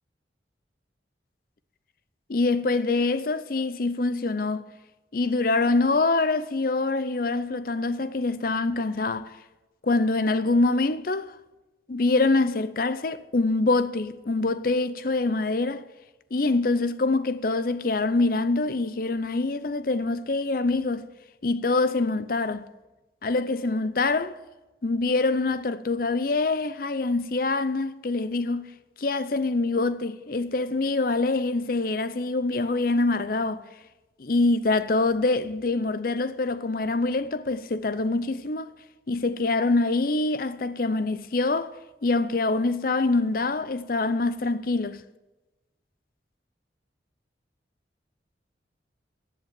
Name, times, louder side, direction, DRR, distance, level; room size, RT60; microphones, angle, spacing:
voice 1, 2.3-4.6 5.1-9.3 9.8-11.4 11.9-15.8 16.3-21.1 21.4-22.7 23.2-24.4 24.8-28.7 29.0-33.6 34.2-38.7 39.1-41.7 42.0-45.0, left 3 dB, 50° left, 0.6 m, -25 dB
14.0 x 7.9 x 7.5 m
head